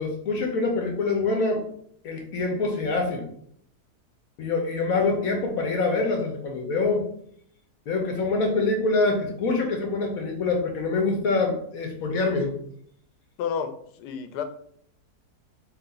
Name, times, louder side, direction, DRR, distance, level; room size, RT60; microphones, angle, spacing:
voice 1, 0.0-1.6 2.0-3.3 4.4-7.1 7.9-12.5, left 3 dB, 65° left, 2 dB, 1.2 m, -25 dB
voice 2, 5.0-5.3 13.4-14.4, left 7 dB, 85° left, 8 dB, 1.2 m, -32 dB
3.1 x 3.0 x 3.8 m, 0.65 s
omnidirectional pair, 1.7 m